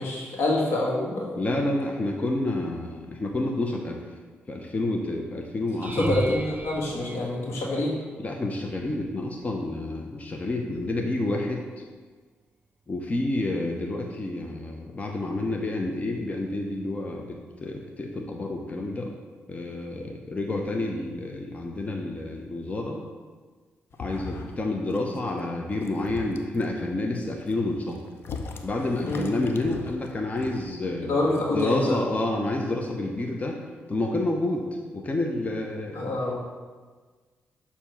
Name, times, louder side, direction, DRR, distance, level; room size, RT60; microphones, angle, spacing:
voice 1, 0.0-1.4 5.8-7.9 29.0-29.2 31.0-32.0 35.9-36.4, left 2 dB, 80° left, -3 dB, 1.5 m, -26 dB
voice 2, 1.4-4.0 4.5-6.2 8.2-11.8 12.9-19.1 19.5-23.0 24.0-28.0 28.6-33.6 33.9-34.7 34.9-36.1, left 2 dB, 35° left, 1 dB, 0.8 m, -29 dB
sound 1, 5.8-8.1 8.8-9.2 9.6-9.8 14.1-14.2, right 3 dB, 35° right, 0.4 m, -35 dB
sound 2, 23.9-24.6 24.9-25.3 25.7-26.6 27.2-30.7, left 4 dB, 60° left, 0.6 m, -40 dB
6.8 x 2.9 x 5.7 m, 1.4 s
cardioid pair, 65°, 4 cm